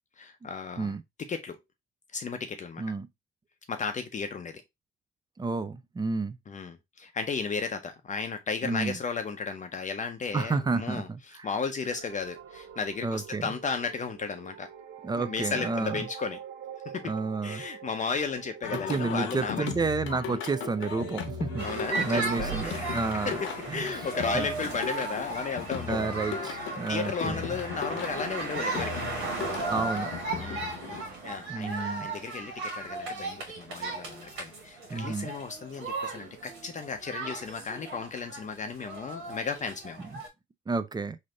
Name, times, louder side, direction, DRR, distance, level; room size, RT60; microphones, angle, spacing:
voice 1, 0.2-0.9 1.2-1.6 2.1-2.8 3.7-4.6 6.5-11.1 11.4-14.7 15.2-16.4 16.9-17.1 17.4-19.7 20.3-20.4 21.6-26.3 26.9-29.0 30.4-40.0, left 5 dB, 40° left, 0.6 m, -34 dB
voice 2, 5.4-6.4 8.6-9.0 10.3-11.5 13.0-13.5 15.0-16.1 17.0-17.6 18.7-21.7 22.0-23.4 23.7-24.1 24.3-24.5 25.9-27.5 29.7-30.1 31.5-32.1 34.9-35.3 40.7-41.2, right 4 dB, 20° right, 0.4 m, -31 dB
sound 1, 11.9-24.2, right 8 dB, 65° right, 0.7 m, -44 dB
Singing, 18.6-31.0, left 7 dB, 80° left, 0.9 m, -38 dB
sound 2, 21.6-40.3, right 3 dB, 85° right, 1.5 m, -36 dB
3.3 x 2.6 x 3.7 m
cardioid pair, 90°, 20 cm